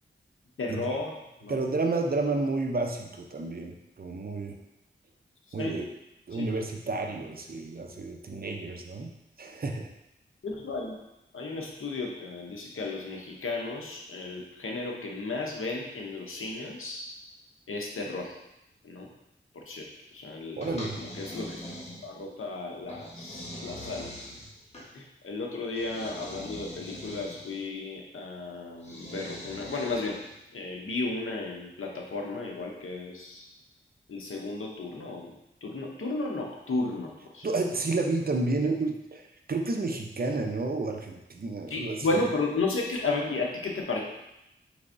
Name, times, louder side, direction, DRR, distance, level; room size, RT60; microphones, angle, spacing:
voice 1, 0.6-1.1 1.4-1.6 5.5-5.8 6.3-6.5 10.4-11.0 11.3-17.1 17.7-18.4 18.8-19.1 19.5-20.6 20.9-21.7 22.0-24.3 24.9-30.2 30.5-33.5 34.1-35.3 35.6-37.5 41.7-44.0, left 3 dB, 80° left, 0 dB, 0.8 m, -34 dB
voice 2, 1.5-4.6 5.5-5.9 6.3-9.1 9.4-9.9 20.6-21.0 37.4-39.2 39.5-42.0, right 3 dB, 45° right, 2 dB, 0.6 m, -30 dB
sound 1, 20.6-22.3 22.9-24.9 25.7-27.6 28.8-30.4, equal, 30° left, 1.1 m, -42 dB
4.7 x 3.4 x 2.6 m, 0.88 s
wide cardioid pair, 55°, 21 cm